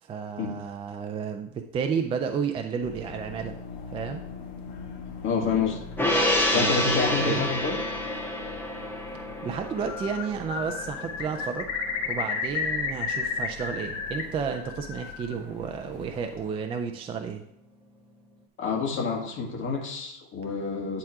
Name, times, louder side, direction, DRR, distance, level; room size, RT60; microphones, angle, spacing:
voice 1, 0.0-3.6 3.9-4.2 6.5-7.5 9.4-11.7 12.1-17.4, right 6 dB, 15° right, 5 dB, 0.3 m, -32 dB
sound 1, 2.8-16.5, left 5 dB, 85° left, 1.7 m, -44 dB
voice 2, 5.2-5.8 6.5-7.8 18.6-21.0, left 5 dB, 35° left, 0 dB, 1.9 m, -28 dB
Gong, 6.0-12.6 12.9-13.1, left 1 dB, 5° left, 1.3 m, -29 dB
Bird, 9.7-10.2 10.5-14.2 14.5-15.3, left 6 dB, 60° left, 1.4 m, -32 dB
10.5 x 3.7 x 4.7 m, 0.75 s
supercardioid pair, 145°, 37 cm